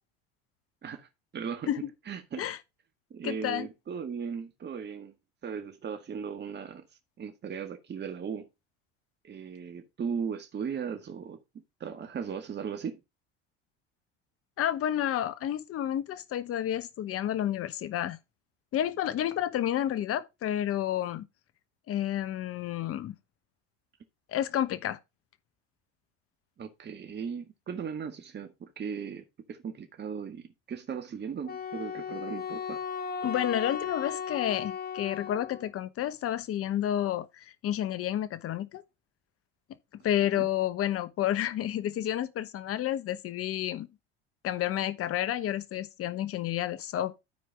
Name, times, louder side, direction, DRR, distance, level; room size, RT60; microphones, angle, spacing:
voice 1, 0.8-1.7 2.1-2.5 3.1-5.2 5.4-6.8 7.2-8.5 9.2-11.4 11.8-13.0 26.6-32.8 40.3-40.5, right 6 dB, 35° right, 1.7 m, -37 dB
voice 2, 3.2-3.7 14.6-18.2 18.7-21.3 21.9-23.1 24.3-25.0 33.2-38.8 40.0-43.9 44.4-47.2, left 11 dB, 45° left, 1.1 m, -30 dB
Wind instrument woodwind instrument, 31.5-35.7, left 6 dB, 30° left, 1.5 m, -36 dB
13.5 x 4.7 x 3.4 m
hypercardioid pair, 80°, 31 cm